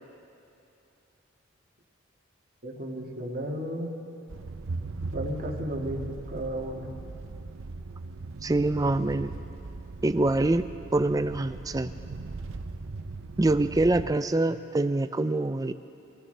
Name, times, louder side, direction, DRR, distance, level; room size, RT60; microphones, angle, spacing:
voice 1, 2.6-3.9 5.1-6.9, equal, 50° right, -1 dB, 1.9 m, -34 dB
sound 1, 4.3-14.1, right 3 dB, 80° right, 0.7 m, -39 dB
voice 2, 8.4-9.3 10.0-11.9 13.4-15.7, right 2 dB, 20° right, 11 dB, 0.4 m, -25 dB
25.5 x 16.0 x 3.4 m, 2.8 s
head